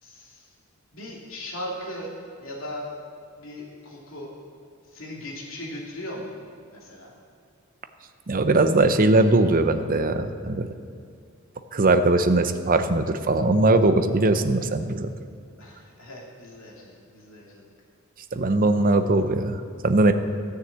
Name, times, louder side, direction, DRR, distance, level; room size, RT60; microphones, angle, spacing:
voice 1, 0.0-0.5 0.9-2.1 2.4-2.8 3.4-4.3 4.9-6.4 6.7-7.1 15.6-17.6, left 1 dB, 65° left, -3 dB, 2.8 m, -38 dB
voice 2, 8.3-10.7 11.7-15.1 18.3-20.1, right 2 dB, 40° right, 9 dB, 0.7 m, -20 dB
14.5 x 6.6 x 8.0 m, 2.3 s
head